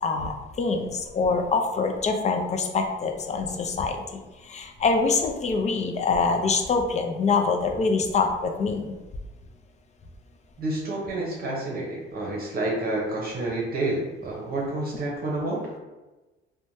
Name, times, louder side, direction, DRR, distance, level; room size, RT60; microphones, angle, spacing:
voice 1, 0.0-8.9, left 4 dB, 35° left, 3 dB, 0.4 m, -25 dB
voice 2, 10.6-15.7, right 2 dB, 50° right, -3 dB, 0.8 m, -29 dB
3.0 x 2.2 x 2.6 m, 1.1 s
cardioid pair, 90°, 21 cm